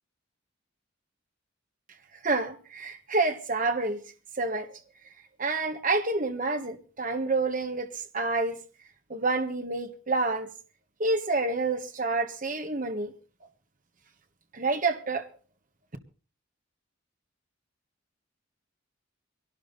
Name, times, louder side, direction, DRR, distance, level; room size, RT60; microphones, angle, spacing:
voice 1, 2.2-4.0 4.4-4.7 5.4-7.9 8.1-8.6 9.1-10.5 11.0-13.1 14.5-15.3, right 3 dB, 40° right, 1.5 m, -28 dB
22.5 x 12.5 x 4.1 m
head